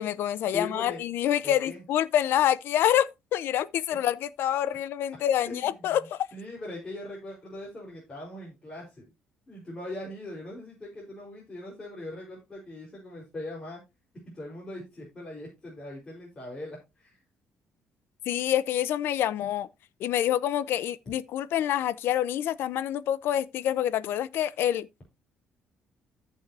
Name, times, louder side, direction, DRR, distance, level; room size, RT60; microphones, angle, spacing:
voice 1, 0.0-6.3 18.3-19.7 20.0-24.9, left 11 dB, 65° left, 0.7 m, -27 dB
voice 2, 0.5-1.0 1.4-1.8 5.4-6.0 6.3-9.1 9.5-13.8 14.3-17.2, left 1 dB, 20° left, 4.5 m, -40 dB
14.5 x 6.4 x 2.8 m
cardioid pair, 150°, 4 cm